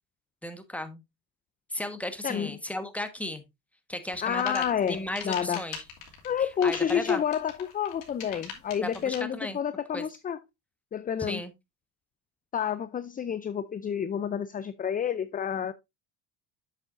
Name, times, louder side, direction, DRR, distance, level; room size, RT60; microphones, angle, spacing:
voice 1, 0.4-1.0 1.7-3.4 3.9-5.8 6.4-7.2 8.8-9.6 9.9-10.1 11.2-11.5, left 1 dB, 5° left, 1.3 m, -35 dB
sound 1, 4.1-9.2, left 7 dB, 60° left, 2.9 m, -41 dB
voice 2, 4.2-5.6 6.2-10.4 10.9-11.4 12.5-15.7, left 8 dB, 20° left, 0.4 m, -29 dB
7.5 x 7.5 x 2.5 m
supercardioid pair, 80°, 49 cm